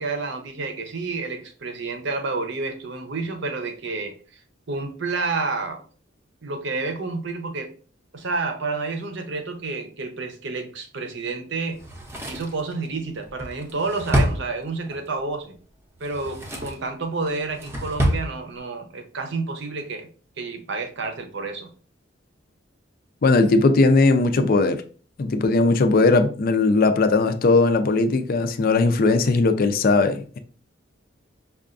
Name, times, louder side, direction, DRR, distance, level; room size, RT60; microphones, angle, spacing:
voice 1, 0.0-4.2 4.7-5.8 6.4-7.7 8.1-11.8 12.3-15.6 16.0-20.1 20.4-21.7, right 3 dB, 60° right, 0.7 m, -29 dB
Drawer open or close, 11.8-15.1 15.9-16.9 17.3-18.3 18.6-18.7, equal, 15° right, 0.6 m, -27 dB
voice 2, 23.2-24.8 25.2-30.4, left 3 dB, 45° left, 0.4 m, -18 dB
5.4 x 2.3 x 2.5 m
head